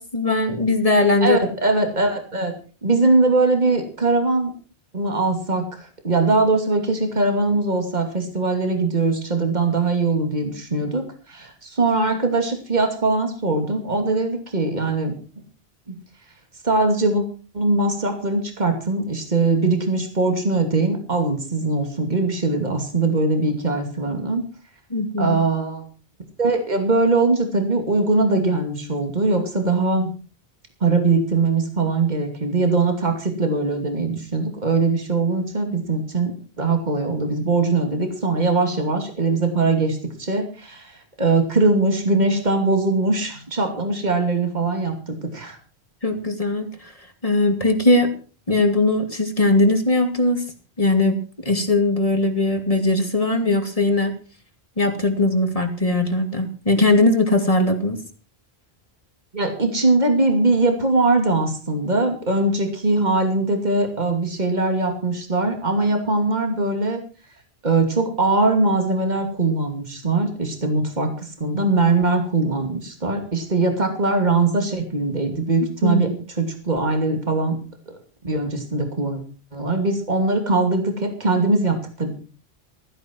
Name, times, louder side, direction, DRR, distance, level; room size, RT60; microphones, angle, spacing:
voice 1, 0.0-1.4 24.9-25.4 46.0-46.9 47.2-48.1 48.5-50.4 50.8-54.1 54.8-58.0 75.8-76.0, left 2 dB, 35° left, 6 dB, 2.6 m, -19 dB
voice 2, 1.2-2.5 2.8-4.5 4.9-5.8 6.0-15.1 15.9-16.0 16.6-17.2 17.5-24.4 25.2-25.8 26.4-30.1 30.8-36.3 36.6-45.6 59.3-67.0 67.6-76.1 76.4-77.6 77.9-78.0 78.2-79.2 79.5-82.1, right 3 dB, 45° right, 4 dB, 2.9 m, -21 dB
15.0 x 15.0 x 4.6 m, 0.38 s
omnidirectional pair, 1.1 m